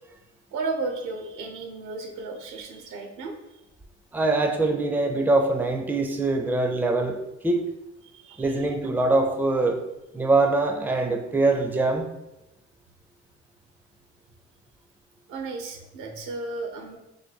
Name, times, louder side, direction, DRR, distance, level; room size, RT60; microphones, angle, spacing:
voice 1, 0.5-3.4 8.0-8.5 15.3-17.0, right 3 dB, 90° right, 4 dB, 0.7 m, -34 dB
voice 2, 4.1-7.2 7.4-7.6 8.4-9.8 10.1-12.1, right 2 dB, 5° right, 4 dB, 0.4 m, -23 dB
3.3 x 2.2 x 4.0 m, 0.95 s
cardioid pair, 90°, 30 cm